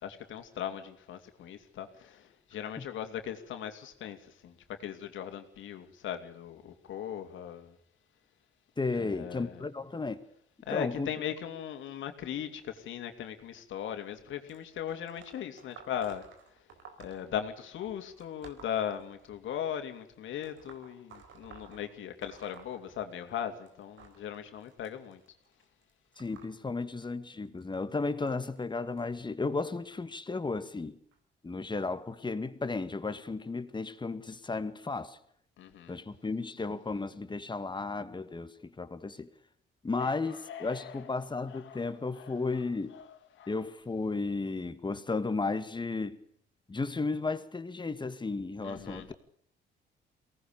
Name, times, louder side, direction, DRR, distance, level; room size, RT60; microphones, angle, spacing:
voice 1, 0.0-7.8 8.9-9.6 10.6-16.2 16.5-16.7 17.0-25.2 35.6-36.0 40.0-41.1 41.5-41.9 42.1-42.6 42.9-43.6 48.6-49.1, left 9 dB, 75° left, 3.0 m, -39 dB
voice 2, 8.8-10.2 10.7-11.1 26.2-31.0 31.4-35.2 35.9-39.3 39.8-43.0 43.5-46.2 46.7-49.1, left 3 dB, 25° left, 2.1 m, -34 dB
sound 1, 14.5-19.6 20.4-23.4 23.7-29.0 29.8-30.1 31.1-31.2 32.1-32.2 32.9-33.0, right 6 dB, 80° right, 4.5 m, -55 dB
23.5 x 18.5 x 6.9 m
cardioid pair, 90°, 20 cm